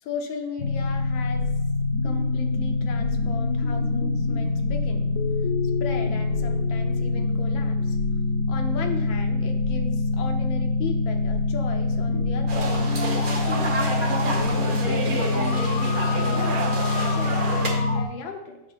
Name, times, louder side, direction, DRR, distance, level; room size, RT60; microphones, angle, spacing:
voice 1, 0.0-1.5 2.0-5.1 5.8-8.0 8.5-16.6 17.0-18.6, left 5 dB, 80° left, 4 dB, 1.5 m, -36 dB
sound 1, 0.6-18.0, left 3 dB, 60° left, 1.0 m, -25 dB
sound 2, 12.5-17.7, right 2 dB, 45° right, 0.6 m, -29 dB
6.8 x 5.1 x 4.1 m, 0.96 s
omnidirectional pair, 2.2 m